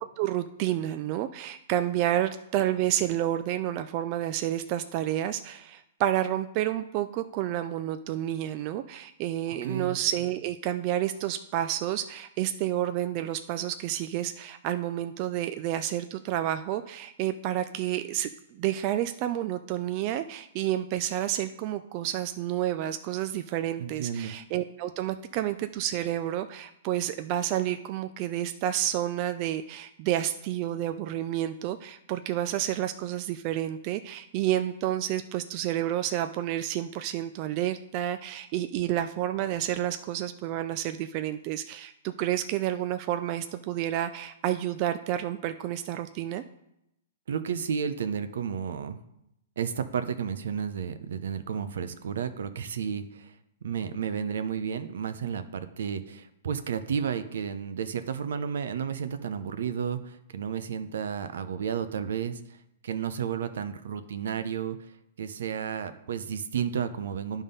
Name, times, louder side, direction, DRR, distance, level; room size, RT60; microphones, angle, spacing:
voice 1, 0.2-46.4, right 12 dB, 35° right, 9 dB, 0.4 m, -30 dB
voice 2, 9.5-10.0 23.8-24.4 47.3-49.0 49.6-53.3 53.6-62.4 62.8-64.8 65.2-67.4, right 7 dB, 75° right, 10 dB, 0.7 m, -32 dB
10.5 x 3.6 x 5.5 m, 0.83 s
hypercardioid pair, 150°, 0 cm